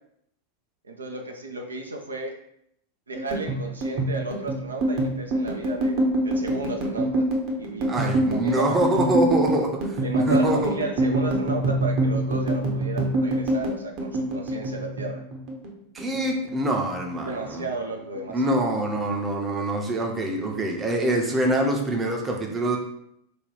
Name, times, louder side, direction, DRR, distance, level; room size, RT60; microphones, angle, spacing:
voice 1, 0.9-2.4 3.1-7.3 7.6-8.1 8.4-8.8 9.0-9.1 10.0-15.2 17.2-18.6, right 3 dB, 75° right, 2 dB, 0.4 m, -33 dB
sound 1, 3.1-15.7 16.0-17.0 17.3-17.7 18.0-18.7, right 1 dB, 40° right, 0.8 m, -25 dB
voice 2, 7.9-10.8 15.9-17.7 18.3-22.8, right 1 dB, 15° right, 1 dB, 0.6 m, -25 dB
3.3 x 2.2 x 4.1 m, 0.74 s
figure-of-eight pair, 90°, 0 cm